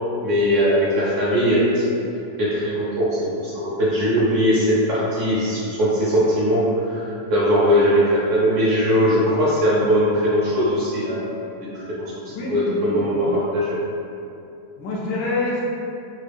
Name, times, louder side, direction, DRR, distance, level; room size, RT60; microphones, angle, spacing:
voice 1, 0.2-1.9 2.4-11.3 11.6-11.7 12.5-13.8, equal, 60° right, -8 dB, 0.9 m, -20 dB
voice 2, 12.3-13.3 14.8-15.6, left 2 dB, 90° left, -5 dB, 1.3 m, -27 dB
3.4 x 2.2 x 3.3 m, 2.7 s
omnidirectional pair, 1.8 m